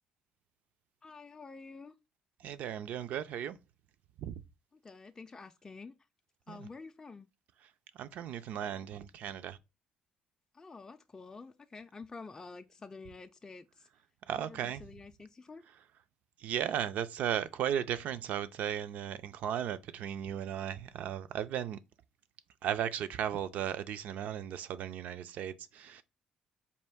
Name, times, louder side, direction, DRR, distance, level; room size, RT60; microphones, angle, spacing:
voice 1, 1.0-2.0 4.8-5.9 6.5-7.3 10.5-13.9 14.3-15.6, left 4 dB, 20° left, 0.3 m, -49 dB
voice 2, 2.4-3.6 4.2-4.4 6.5-6.7 7.9-9.6 14.3-14.8 16.4-21.8 22.6-26.0, right 9 dB, 70° right, 0.4 m, -36 dB
4.2 x 2.5 x 3.5 m
cardioid pair, 90°, 3 cm